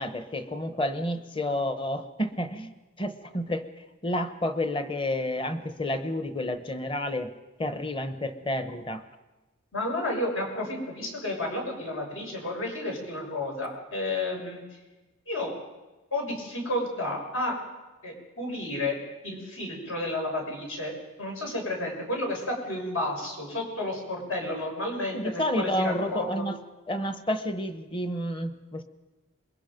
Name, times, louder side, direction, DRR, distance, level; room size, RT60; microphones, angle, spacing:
voice 1, 0.0-3.6 4.0-7.3 7.6-9.0 25.1-26.6 26.9-28.8, left 1 dB, 25° left, 9 dB, 1.1 m, -30 dB
voice 2, 9.7-14.6 15.3-15.5 16.1-17.6 18.0-19.0 19.2-20.9 21.2-26.5, left 1 dB, 75° left, 0 dB, 6.4 m, -31 dB
27.0 x 22.0 x 5.3 m, 1.2 s
head